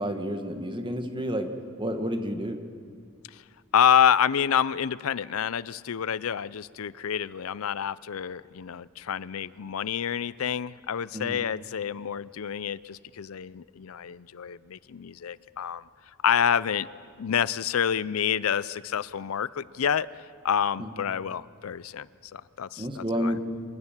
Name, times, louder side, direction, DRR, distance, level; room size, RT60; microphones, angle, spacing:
voice 1, 0.0-1.5 1.8-2.6 11.1-11.4 20.8-20.9 22.8-23.4, equal, 25° right, 6 dB, 1.6 m, -30 dB
voice 2, 3.7-15.8 16.2-16.9 17.2-20.1 20.4-22.1 22.3-23.3, left 8 dB, 80° left, 19 dB, 0.5 m, -27 dB
26.5 x 19.5 x 7.4 m, 2.1 s
head